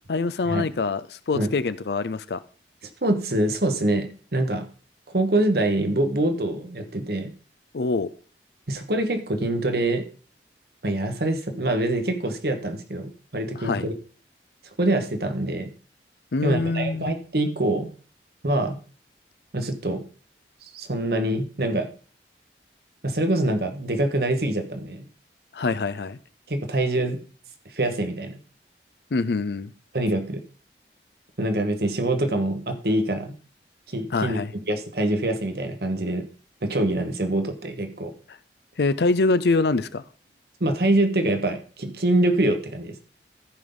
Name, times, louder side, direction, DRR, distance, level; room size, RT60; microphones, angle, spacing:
voice 1, 0.1-2.4 7.7-8.1 13.6-13.9 16.3-17.1 25.5-26.2 29.1-29.7 34.1-34.5 38.8-40.0, left 3 dB, 70° left, 0.5 m, -24 dB
voice 2, 3.0-4.6 5.1-7.3 8.7-10.1 10.8-13.9 14.8-15.7 16.4-17.9 18.4-18.8 19.5-20.0 20.6-21.9 23.0-25.0 26.5-27.2 27.6-28.4 29.9-30.4 31.4-33.3 33.9-34.4 34.7-36.3 36.6-38.1 40.6-42.9, right 1 dB, 60° right, 1.3 m, -25 dB
14.0 x 5.4 x 3.9 m
head